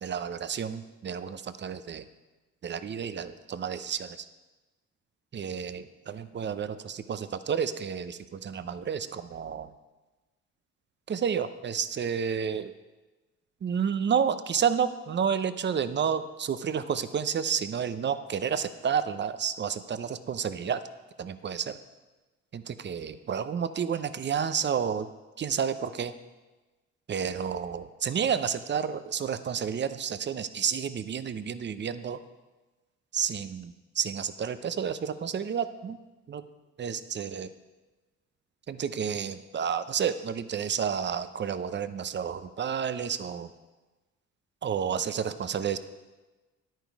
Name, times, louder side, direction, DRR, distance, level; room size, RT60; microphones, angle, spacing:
voice 1, 0.0-2.1 2.6-4.3 5.3-9.7 11.1-12.7 13.6-20.8 21.2-21.8 22.5-25.1 25.4-26.1 27.1-32.2 33.1-36.0 36.3-36.4 36.8-37.5 38.7-43.5 44.6-45.8, right 7 dB, 35° right, 13 dB, 0.6 m, -30 dB
10.0 x 9.1 x 4.7 m, 1.2 s
cardioid pair, 90°, 30 cm